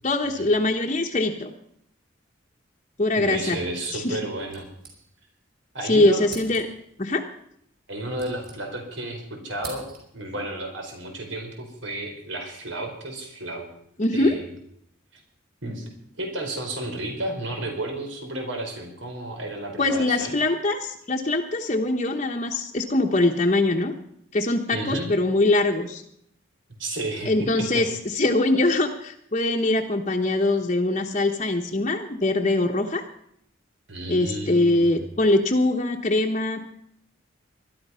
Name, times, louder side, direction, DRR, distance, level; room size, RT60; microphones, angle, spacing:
voice 1, 0.0-1.5 3.0-3.6 3.9-4.2 5.8-6.7 7.0-7.2 14.0-14.3 19.8-23.9 24.3-26.0 27.3-33.0 34.1-36.6, left 2 dB, 35° left, 1 dB, 1.1 m, -22 dB
voice 2, 3.1-4.7 5.7-6.2 7.9-9.9 10.1-13.7 14.1-14.5 15.1-15.2 15.6-15.8 16.2-20.4 24.7-25.1 26.8-27.8 33.9-35.0, right 1 dB, 75° right, 3 dB, 4.3 m, -32 dB
sound 1, 4.5-5.5 5.7-5.8 6.2-6.9 7.8-9.0 9.3-10.3, right 3 dB, 50° right, 5.7 m, -44 dB
21.0 x 12.5 x 5.6 m, 0.71 s
head